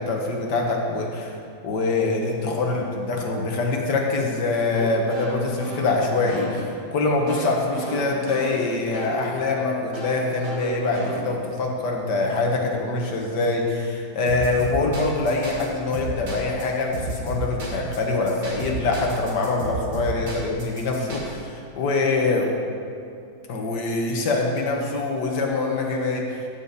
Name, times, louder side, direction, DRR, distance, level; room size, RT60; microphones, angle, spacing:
voice 1, 0.0-1.4 1.6-22.5 23.5-26.4, left 3 dB, 60° left, 0 dB, 1.7 m, -24 dB
sound 1, 4.7-9.3 9.9-11.6 14.3-15.6 15.9-16.6 16.9-18.0 18.3-21.2, right 2 dB, 45° right, 2.2 m, -33 dB
13.5 x 7.0 x 4.1 m, 2.5 s
omnidirectional pair, 2.1 m